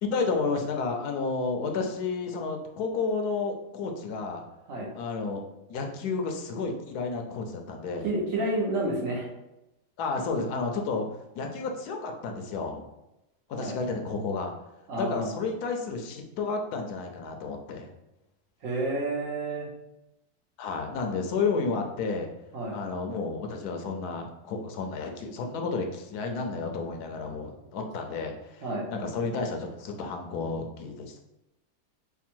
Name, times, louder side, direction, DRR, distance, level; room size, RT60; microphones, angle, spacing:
voice 1, 0.0-4.4 4.9-5.4 5.7-8.1 10.0-11.0 11.3-12.9 13.5-14.5 15.0-17.9 20.6-22.3 22.7-28.6 28.9-31.2, left 4 dB, 80° left, 4 dB, 1.1 m, -31 dB
voice 2, 8.0-9.3 13.6-13.7 14.9-15.3 18.6-19.7 22.5-22.8 28.6-28.9, right 2 dB, 60° right, -3 dB, 1.3 m, -30 dB
3.5 x 2.2 x 4.3 m, 0.93 s
omnidirectional pair, 1.7 m